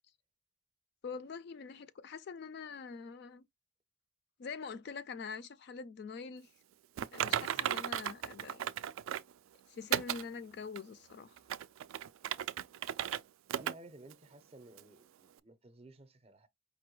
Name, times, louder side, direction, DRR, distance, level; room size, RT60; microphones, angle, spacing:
voice 1, 1.0-3.5 4.4-6.5 7.1-8.7 9.7-11.4, left 5 dB, 55° left, 0.3 m, -44 dB
Typing, 7.0-9.3 9.9-10.2 10.8-10.9 11.4-13.2 13.5-13.7 14.1-14.2 14.8-14.9, right 10 dB, 75° right, 0.3 m, -35 dB
voice 2, 7.3-7.7 13.5-16.5, right 1 dB, 30° right, 0.6 m, -55 dB
5.1 x 2.2 x 3.1 m
head